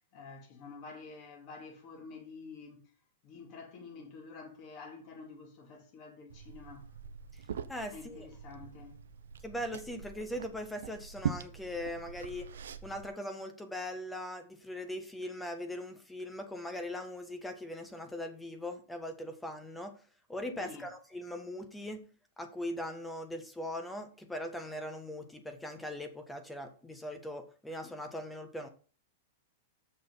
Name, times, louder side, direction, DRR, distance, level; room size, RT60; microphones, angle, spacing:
voice 1, 0.1-2.8 3.2-6.9 7.9-9.0 20.6-20.8, left 4 dB, 45° left, 3.4 m, -49 dB
Liquid, 6.3-13.1, right 7 dB, 80° right, 0.8 m, -42 dB
voice 2, 7.7-8.3 9.4-12.5 12.8-19.9 20.3-22.0 22.4-28.7, left 1 dB, 5° left, 1.4 m, -40 dB
6.8 x 6.2 x 5.7 m
hypercardioid pair, 125°, 0 cm